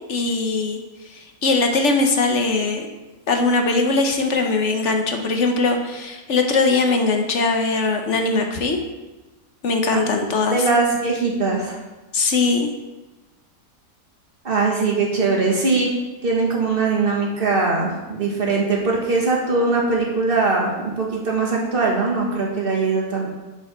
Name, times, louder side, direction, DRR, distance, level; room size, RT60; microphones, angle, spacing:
voice 1, 0.1-0.8 1.1-2.9 3.3-8.8 9.6-10.6 12.1-12.7, left 3 dB, 55° left, 4 dB, 1.1 m, -20 dB
voice 2, 10.5-11.8 14.4-15.9 16.2-23.3, right 3 dB, 35° right, -2 dB, 1.7 m, -21 dB
10.5 x 5.1 x 4.3 m, 1.1 s
omnidirectional pair, 1.6 m